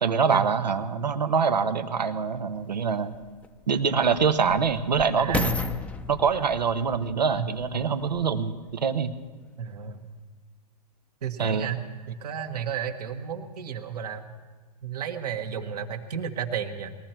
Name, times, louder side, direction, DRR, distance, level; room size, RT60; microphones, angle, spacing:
voice 1, 0.0-3.1 3.7-5.5 6.1-9.1 11.4-11.7, right 6 dB, 85° right, 9 dB, 1.0 m, -25 dB
sound 1, 2.3-2.4 3.1-8.4 9.1-9.2, left 3 dB, 5° left, 0.6 m, -34 dB
voice 2, 5.2-5.6 7.4-7.9 9.6-10.0 11.2-14.3 14.8-17.0, right 8 dB, 70° right, 4 dB, 1.7 m, -33 dB
21.0 x 14.0 x 4.5 m, 1.4 s
hypercardioid pair, 120°, 21 cm